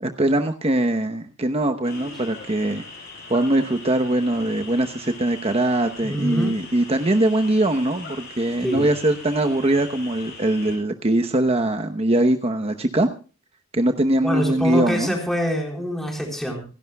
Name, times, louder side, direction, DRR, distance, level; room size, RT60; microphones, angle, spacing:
voice 1, 0.0-2.8 3.3-13.1 13.7-15.1, right 1 dB, 30° right, 6 dB, 0.9 m, -22 dB
sound 1, 1.8-10.8, left 3 dB, 55° left, 6.9 m, -40 dB
voice 2, 6.0-6.6 8.6-8.9 14.2-16.6, equal, ahead, 0 dB, 4.0 m, -25 dB
27.5 x 11.5 x 2.3 m, 0.36 s
head